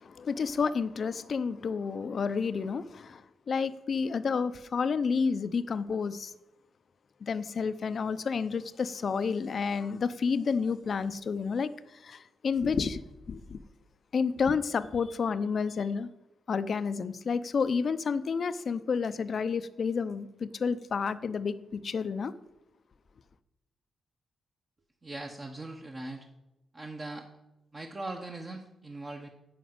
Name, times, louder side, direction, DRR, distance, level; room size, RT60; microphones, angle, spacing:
voice 1, 0.0-3.2 3.5-6.3 7.2-11.7 12.0-13.0 13.3-13.6 14.1-16.1 16.5-22.3, left 5 dB, 50° left, 0.6 m, -30 dB
voice 2, 25.0-26.2 26.7-27.3 27.7-29.3, right 2 dB, 25° right, 1.0 m, -40 dB
10.0 x 5.2 x 7.9 m
cardioid pair, 115°, 0 cm